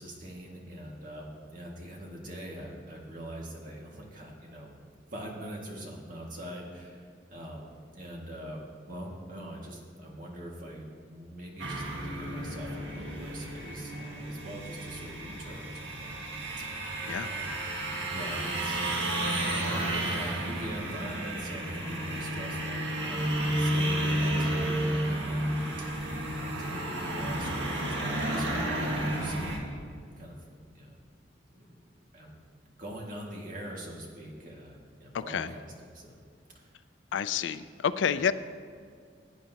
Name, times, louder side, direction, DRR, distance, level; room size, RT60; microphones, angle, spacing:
voice 1, 0.0-4.7 5.1-8.6 8.9-16.2 16.6-17.0 17.3-17.7 18.1-25.5 25.8-30.5 30.7-31.0 31.5-31.8 32.1-36.2 36.5-36.7 38.0-38.2, equal, 45° right, -2 dB, 2.0 m, -43 dB
sound 1, 11.6-29.6, right 1 dB, 80° right, 1.8 m, -32 dB
voice 2, 37.1-38.3, left 7 dB, 85° left, 14 dB, 0.4 m, -29 dB
17.0 x 9.2 x 2.9 m, 2.2 s
head